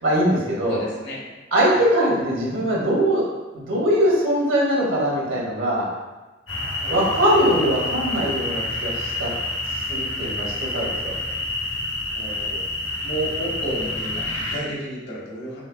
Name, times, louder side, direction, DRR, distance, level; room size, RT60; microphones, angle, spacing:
voice 1, 0.0-0.8 1.5-3.2 3.5-5.9 6.9-9.3 9.7-11.1, equal, 80° right, -5 dB, 1.5 m, -21 dB
voice 2, 0.7-1.2 1.7-1.8 6.8-7.2 12.1-12.6 13.0-15.6, right 1 dB, 60° left, -4 dB, 1.2 m, -32 dB
sound 1, 6.5-14.6, left 2 dB, 80° left, 1.1 m, -28 dB
5.5 x 3.4 x 2.3 m, 1.2 s
head